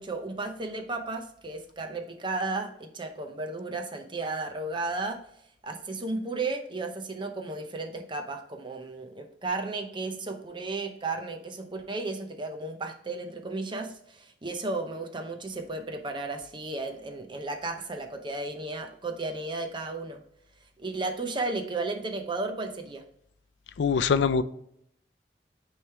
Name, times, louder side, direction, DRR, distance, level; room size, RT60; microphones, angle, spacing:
voice 1, 0.0-5.2 5.6-20.2 20.8-23.0, right 3 dB, 25° right, 4 dB, 0.6 m, -34 dB
voice 2, 23.8-24.4, left 6 dB, 85° left, 12 dB, 0.4 m, -23 dB
9.0 x 3.2 x 3.3 m, 0.71 s
head